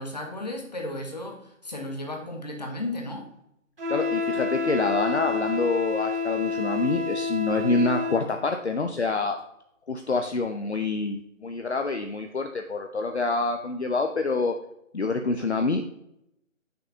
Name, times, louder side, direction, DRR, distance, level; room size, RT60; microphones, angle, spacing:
voice 1, 0.0-3.3, left 1 dB, 30° left, 2 dB, 1.1 m, -34 dB
Wind instrument woodwind instrument, 3.8-8.3, left 4 dB, 45° right, 1.9 m, -28 dB
voice 2, 3.9-9.4 9.9-14.6 14.9-15.9, left 3 dB, 55° left, 5 dB, 0.6 m, -26 dB
8.2 x 6.6 x 2.7 m, 0.77 s
figure-of-eight pair, 165°, 40 cm